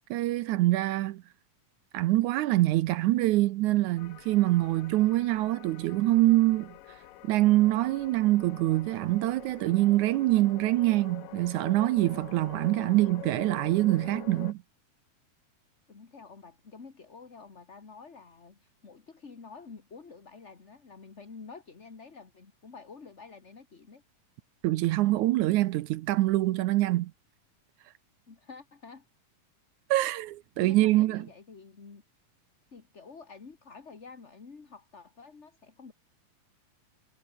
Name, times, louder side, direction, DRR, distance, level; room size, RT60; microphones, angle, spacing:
voice 1, 0.1-1.2 1.9-7.0 7.2-14.6 24.6-27.1 29.9-31.3, right 17 dB, 75° right, 2.0 m, -25 dB
sound 1, 4.0-14.5, left 14 dB, 85° left, 2.7 m, -47 dB
voice 2, 12.8-13.1 15.9-24.0 28.3-29.1 30.6-32.0 32.7-35.9, left 4 dB, 30° left, 1.6 m, -49 dB
omnidirectional pair, 3.8 m